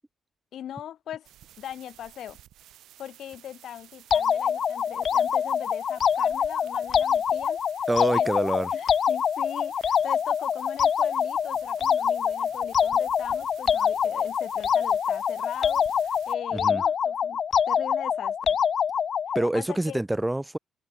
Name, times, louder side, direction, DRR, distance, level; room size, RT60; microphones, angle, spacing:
voice 1, 0.5-1.3 1.6-2.4 3.0-8.3 8.7-18.6 19.5-20.0, left 10 dB, 70° left, 0.8 m, -40 dB
sound 1, 1.2-16.3, right 13 dB, 80° right, 6.5 m, -52 dB
sound 2, 4.1-19.5, left 7 dB, 55° left, 0.3 m, -25 dB
voice 2, 7.9-8.7 16.5-16.8 19.3-20.6, right 1 dB, 10° right, 1.6 m, -26 dB
cardioid pair, 90°, 0 cm